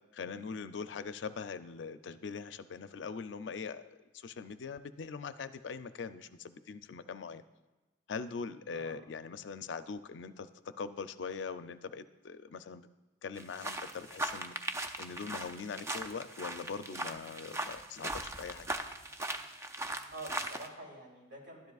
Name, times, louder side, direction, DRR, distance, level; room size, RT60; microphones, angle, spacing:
voice 1, 0.1-7.4 8.1-10.5 10.8-12.9 13.2-14.5 15.0-18.7, left 5 dB, 85° left, 12 dB, 0.4 m, -42 dB
voice 2, 8.7-9.0 20.1-21.7, right 2 dB, 70° right, -2 dB, 2.9 m, -47 dB
sound 1, 13.4-20.7, right 2 dB, 15° right, 0.4 m, -39 dB
12.0 x 10.5 x 2.4 m, 1.2 s
head